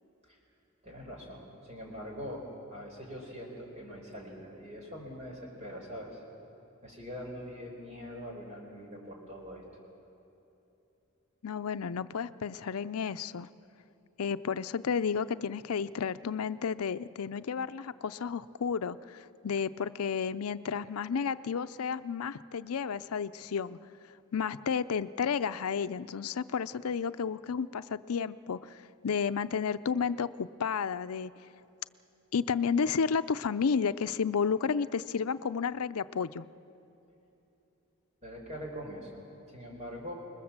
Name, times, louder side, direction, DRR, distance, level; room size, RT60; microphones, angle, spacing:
voice 1, 0.8-2.4 2.7-6.2 6.8-9.6 38.2-39.2 39.5-40.1, equal, 30° right, 0 dB, 5.0 m, -43 dB
voice 2, 11.4-13.5 14.2-23.8 24.3-31.3 32.3-36.5, left 6 dB, 90° left, 13 dB, 0.5 m, -32 dB
26.5 x 21.0 x 7.4 m, 2.9 s
head